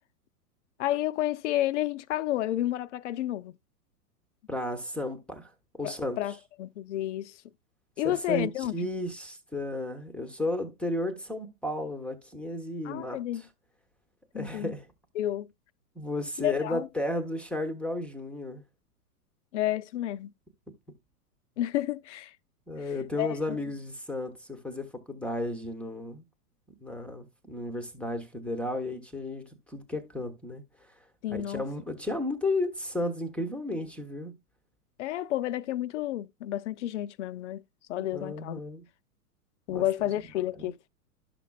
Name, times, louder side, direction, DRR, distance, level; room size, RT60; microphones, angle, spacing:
voice 1, 0.8-3.6 5.8-6.3 6.6-7.4 8.0-8.9 12.8-13.4 14.3-14.7 15.2-15.5 16.4-16.9 19.5-20.3 21.6-22.3 23.2-23.6 31.2-31.6 35.0-37.6 37.9-38.6 39.7-40.8, left 13 dB, 50° left, 0.6 m, -30 dB
voice 2, 4.5-6.2 8.0-13.5 14.3-14.9 15.9-18.6 22.7-26.2 26.8-30.6 31.3-34.3 38.0-38.8 39.7-40.1 40.6-40.7, left 1 dB, ahead, 0.9 m, -33 dB
12.0 x 6.0 x 2.3 m
hypercardioid pair, 120°, 47 cm